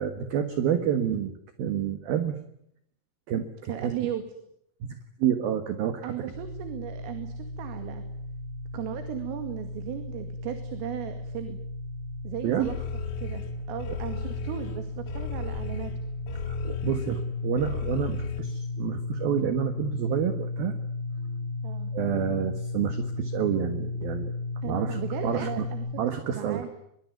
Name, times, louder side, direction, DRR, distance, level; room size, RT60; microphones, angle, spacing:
voice 1, 0.0-1.3 1.6-2.4 3.3-4.1 4.8-4.9 5.2-6.3 12.4-12.7 13.9-14.0 16.5-20.7 21.9-24.3 24.6-25.7 26.0-26.7, right 9 dB, 60° right, 9 dB, 2.8 m, -29 dB
voice 2, 3.7-4.2 6.0-8.0 8.7-11.6 12.2-12.8 13.2-13.4 13.7-15.9 21.6-21.9 24.6-25.9 26.3-26.7, right 11 dB, 75° right, 8 dB, 4.8 m, -36 dB
sound 1, 6.3-25.9, left 2 dB, 25° right, 2.9 m, -35 dB
sound 2, 12.6-18.4, left 5 dB, 75° left, 6.5 m, -36 dB
24.0 x 23.0 x 9.4 m, 0.75 s
omnidirectional pair, 5.9 m